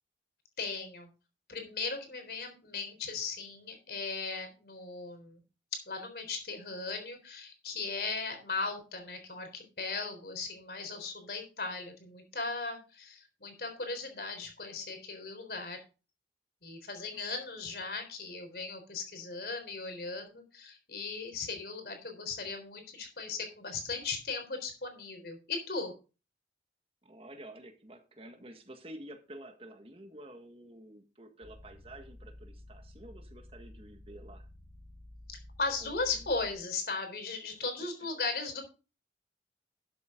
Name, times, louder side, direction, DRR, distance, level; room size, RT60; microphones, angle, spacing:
voice 1, 0.6-1.1 1.5-5.4 5.9-15.8 16.6-25.9 35.3-38.6, left 4 dB, 60° left, 6 dB, 3.8 m, -37 dB
voice 2, 27.0-34.5 35.8-35.9, right 1 dB, 35° right, 6 dB, 1.7 m, -50 dB
sound 1, 31.4-36.5, left 1 dB, 20° left, 4.0 m, -52 dB
12.5 x 8.0 x 3.8 m, 0.32 s
head